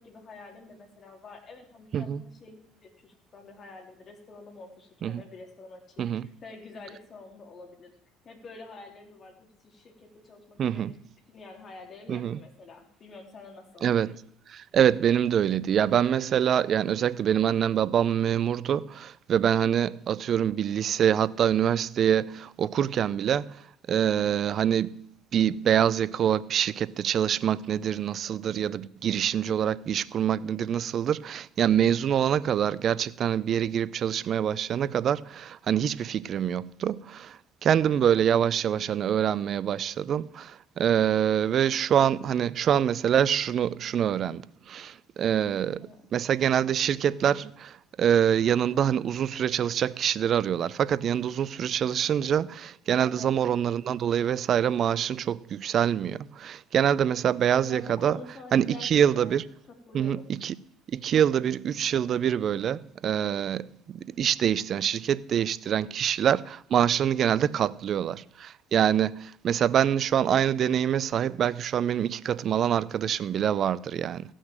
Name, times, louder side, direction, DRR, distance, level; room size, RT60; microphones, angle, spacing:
voice 1, 0.0-7.9 8.2-10.8 11.3-13.9 45.8-46.0 53.0-53.3 53.6-53.7 57.6-58.9 59.2-59.4 59.7-60.3, left 3 dB, 45° left, 3.5 m, -47 dB
voice 2, 10.6-10.9 12.1-12.4 13.8-14.2 14.5-23.6 23.9-58.2 58.5-59.4 59.9-60.5 60.9-74.2, right 9 dB, 50° right, 0.5 m, -25 dB
15.0 x 6.3 x 7.6 m
hypercardioid pair, 65°, 0 cm